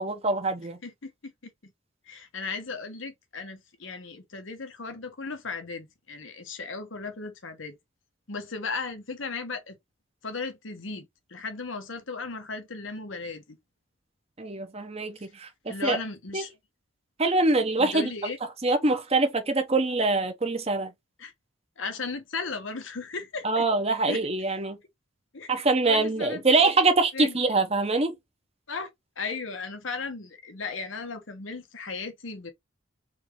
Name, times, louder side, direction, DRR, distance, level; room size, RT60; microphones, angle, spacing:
voice 1, 0.0-0.8 14.4-16.0 16.3-16.4 17.2-18.1 18.6-20.9 23.4-24.8 25.5-28.1, right 3 dB, 30° right, 0.9 m, -24 dB
voice 2, 0.8-1.7 2.1-7.8 8.3-9.8 10.2-13.6 15.7-16.5 17.8-18.4 21.2-21.3 21.8-23.7 24.1-24.2 25.3-25.5 25.9-26.8 27.1-27.4 28.7-28.9 29.2-32.5, left 4 dB, 80° left, 1.3 m, -36 dB
4.5 x 3.3 x 3.0 m
head